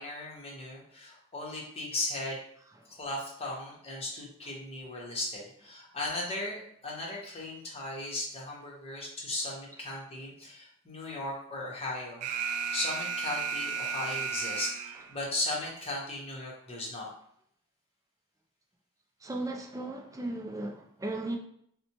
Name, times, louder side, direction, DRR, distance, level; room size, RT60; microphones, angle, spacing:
voice 1, 0.0-2.4 2.9-17.1, left 2 dB, 25° left, -3 dB, 0.9 m, -37 dB
Alarm, 12.2-15.2, right 5 dB, 85° right, 0.4 m, -34 dB
voice 2, 19.2-21.4, right 2 dB, 15° right, 2 dB, 0.4 m, -36 dB
4.1 x 2.1 x 2.9 m, 0.66 s
head